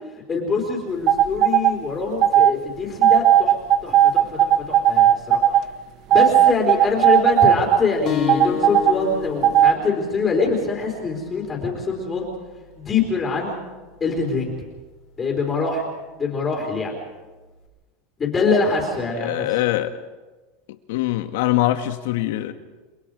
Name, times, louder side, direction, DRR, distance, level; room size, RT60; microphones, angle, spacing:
voice 1, 0.3-3.5 3.8-5.4 6.1-12.3 12.8-13.6 14.0-14.5 15.2-15.8 16.2-16.9 18.2-19.4, left 4 dB, 15° left, -1 dB, 4.0 m, -24 dB
sound 1, 1.1-1.7 2.2-2.5 3.0-5.6 6.1-7.8 8.3-8.9 9.4-9.7, right 11 dB, 40° right, 0.8 m, -15 dB
sound 2, 8.1-13.2, left 6 dB, 35° left, 3.1 m, -32 dB
voice 2, 19.2-19.9 20.9-22.5, left 15 dB, 70° left, 9 dB, 1.7 m, -22 dB
30.0 x 21.5 x 5.0 m, 1.2 s
supercardioid pair, 165°, 0 cm